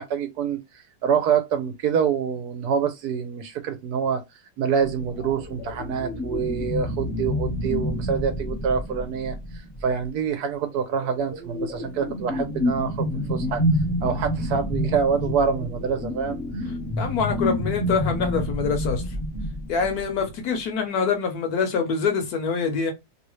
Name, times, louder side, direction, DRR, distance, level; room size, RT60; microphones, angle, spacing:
voice 1, 0.0-4.2 4.6-9.4 9.8-13.6 14.0-16.6, right 7 dB, 70° right, 1.0 m, -26 dB
sound 1, 4.8-10.0 10.9-20.2, left 1 dB, 25° left, 0.7 m, -28 dB
voice 2, 17.0-19.0 19.7-22.9, left 5 dB, 65° left, 1.2 m, -25 dB
3.0 x 2.6 x 3.1 m
omnidirectional pair, 1.9 m